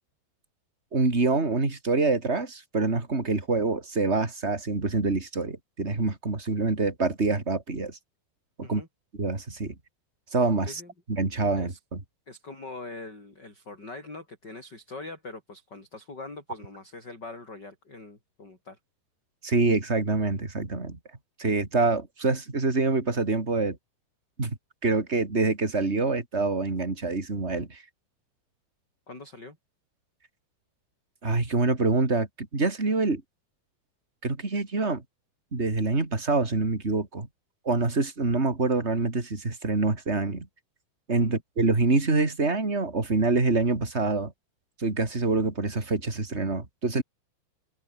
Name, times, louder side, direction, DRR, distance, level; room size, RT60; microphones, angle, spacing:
voice 1, 0.9-8.0 8.6-8.8 9.2-9.7 10.3-10.8 11.1-12.0 19.4-21.0 21.4-23.8 24.4-24.6 24.8-27.8 31.2-33.2 34.2-35.0 35.5-37.3 37.6-40.5 41.1-44.3 44.8-47.0, right 3 dB, 15° right, 2.9 m, -26 dB
voice 2, 12.3-18.8 29.1-29.6 41.2-41.4, left 3 dB, 20° left, 6.5 m, -43 dB
omnidirectional pair, 5.5 m